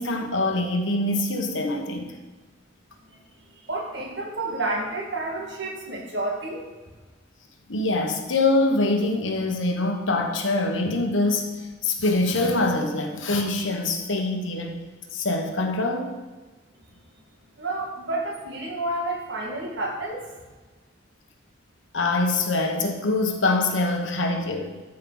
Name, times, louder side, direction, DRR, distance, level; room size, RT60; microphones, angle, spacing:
voice 1, 0.0-2.1 7.7-14.8 15.1-16.2 21.9-24.8, left 2 dB, 80° left, 3 dB, 1.3 m, -24 dB
voice 2, 3.7-6.6 17.6-20.2, right 2 dB, 65° right, 0 dB, 1.8 m, -30 dB
13.0 x 5.5 x 4.0 m, 1.3 s
head